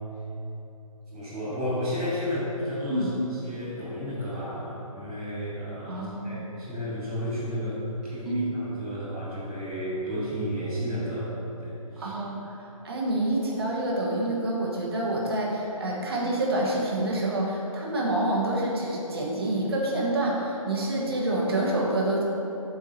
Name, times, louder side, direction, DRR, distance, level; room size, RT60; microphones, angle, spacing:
voice 1, 1.1-11.3 11.6-12.1, equal, ahead, -20 dB, 0.4 m, -32 dB
voice 2, 5.9-6.4 8.2-8.5 12.0-22.2, right 1 dB, 40° right, -3 dB, 1.4 m, -27 dB
7.1 x 5.5 x 4.4 m, 3.0 s
hypercardioid pair, 175°, 19 cm